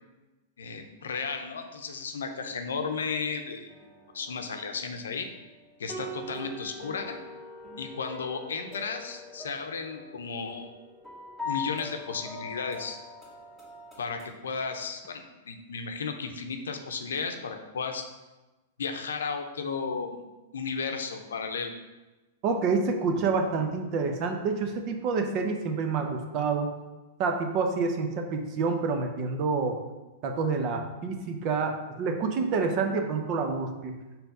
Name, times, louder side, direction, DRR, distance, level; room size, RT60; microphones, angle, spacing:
voice 1, 0.6-3.8 4.1-5.3 5.8-7.2 7.8-10.7 11.4-13.0 14.0-18.1 18.8-20.2 20.5-21.7, left 5 dB, 75° left, 6 dB, 0.7 m, -34 dB
sound 1, 3.7-14.3, left 3 dB, 15° right, 2.1 m, -42 dB
voice 2, 22.4-26.7 27.2-29.8 30.2-34.0, right 4 dB, 45° right, 4 dB, 0.9 m, -28 dB
4.5 x 4.1 x 5.3 m, 1.1 s
hypercardioid pair, 105°, 0 cm